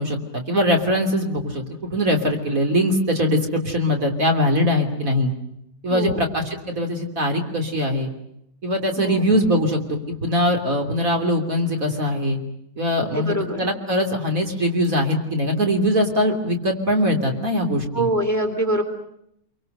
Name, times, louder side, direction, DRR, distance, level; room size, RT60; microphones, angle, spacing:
voice 1, 0.0-1.7 1.9-5.3 5.8-8.1 8.6-12.4 12.8-18.1, equal, 55° right, 3 dB, 3.7 m, -22 dB
voice 2, 5.9-6.2 9.0-9.3 13.0-13.7 16.2-16.3 17.9-18.8, right 1 dB, 10° left, 5 dB, 3.2 m, -24 dB
27.5 x 24.5 x 6.7 m, 0.76 s
omnidirectional pair, 1.8 m